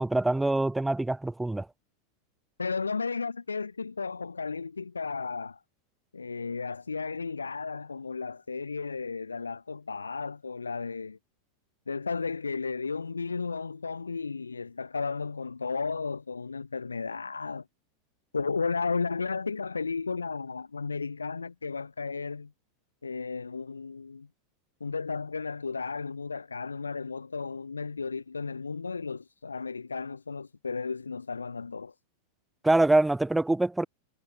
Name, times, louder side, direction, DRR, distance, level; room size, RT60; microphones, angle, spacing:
voice 1, 0.0-1.7 32.6-33.9, right 2 dB, 5° right, 2.2 m, -24 dB
voice 2, 2.6-5.6 6.1-11.2 11.9-17.6 18.3-22.5 23.0-24.3 24.8-31.9, left 4 dB, 75° left, 2.5 m, -34 dB
figure-of-eight pair, 90°, 0 cm